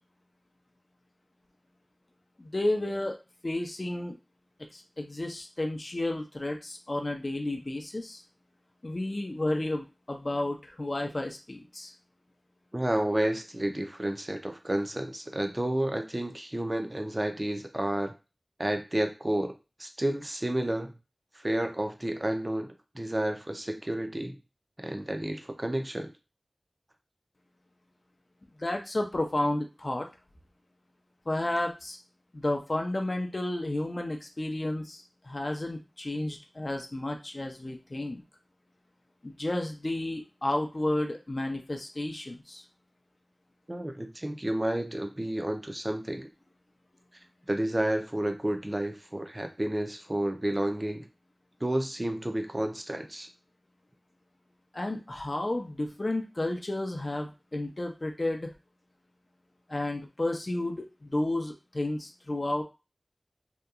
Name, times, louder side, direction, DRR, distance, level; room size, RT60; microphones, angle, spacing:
voice 1, 2.4-3.2 3.4-4.2 4.7-8.2 8.8-11.9 28.6-30.1 31.3-32.0 32.3-38.2 39.2-42.6 54.7-58.5 59.7-62.6, left 1 dB, 50° left, 3 dB, 0.4 m, -32 dB
voice 2, 12.7-18.1 18.6-19.5 19.8-20.9 21.3-22.7 22.9-24.4 24.8-26.1 43.7-46.3 47.5-51.1 51.6-53.3, right 1 dB, 30° right, 5 dB, 0.4 m, -30 dB
2.8 x 2.2 x 2.4 m, 0.29 s
wide cardioid pair, 50°, 0 cm